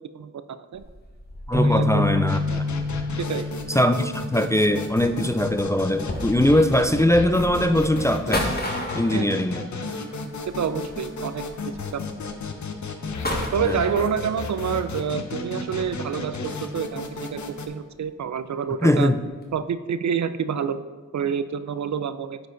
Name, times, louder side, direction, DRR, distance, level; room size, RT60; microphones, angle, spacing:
voice 1, 0.1-0.8 1.6-2.0 3.3-3.5 9.1-9.4 10.6-12.0 13.5-19.1 19.5-20.8 21.1-22.4, right 7 dB, 60° right, 13 dB, 0.5 m, -28 dB
sound 1, 0.7-14.5 15.1-17.6 17.9-18.0 18.6-18.9 19.2-19.6, left 1 dB, 30° left, 1.6 m, -36 dB
voice 2, 1.5-2.7 3.7-8.6 8.9-9.6 13.6-13.8 18.8-19.2, left 1 dB, 10° left, 8 dB, 0.4 m, -21 dB
sound 2, 1.5-5.0, left 2 dB, 20° right, 1.3 m, -27 dB
sound 3, 2.3-17.7, left 3 dB, 60° left, 0.8 m, -34 dB
9.4 x 4.7 x 3.9 m, 1.4 s
cardioid pair, 50°, 32 cm